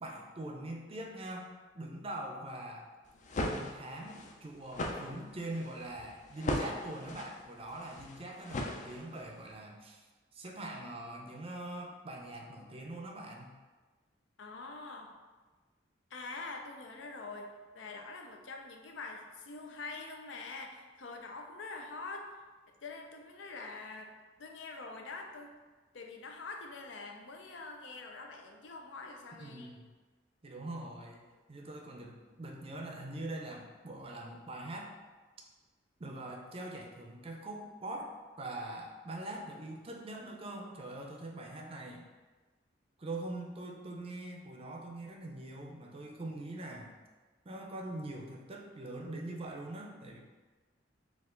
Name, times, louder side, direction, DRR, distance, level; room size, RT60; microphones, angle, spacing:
voice 1, 0.0-2.9 3.4-10.1 10.3-13.6 29.3-29.8 30.4-31.2 31.5-34.9 36.0-42.1 43.0-47.0 47.4-50.2, right 1 dB, 30° right, 1 dB, 0.5 m, -43 dB
sound 1, 3.1-9.3, left 1 dB, 40° left, 0.4 m, -38 dB
voice 2, 14.4-15.2 16.1-22.4 22.8-25.5 25.9-29.7, left 3 dB, 90° left, 3 dB, 0.5 m, -45 dB
4.5 x 2.4 x 3.7 m, 1.3 s
head